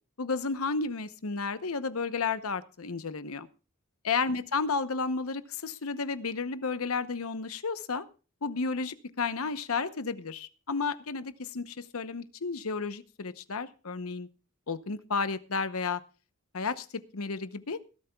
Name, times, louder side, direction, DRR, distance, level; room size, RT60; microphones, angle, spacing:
voice 1, 0.2-3.5 4.0-8.1 8.4-14.3 14.7-16.0 16.5-17.8, left 4 dB, 80° left, 13 dB, 0.9 m, -32 dB
20.5 x 12.5 x 2.3 m, 0.35 s
head